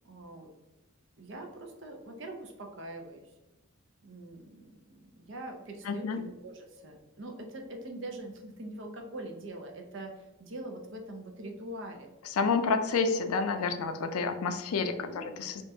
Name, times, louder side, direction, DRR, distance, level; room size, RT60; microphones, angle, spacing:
voice 1, 0.0-0.5 1.2-3.3 4.0-12.1 15.0-15.3, right 1 dB, 55° right, 3 dB, 0.6 m, -43 dB
voice 2, 5.9-6.2 12.3-15.6, left 4 dB, 90° left, 8 dB, 0.4 m, -29 dB
5.1 x 2.5 x 2.7 m, 1.0 s
head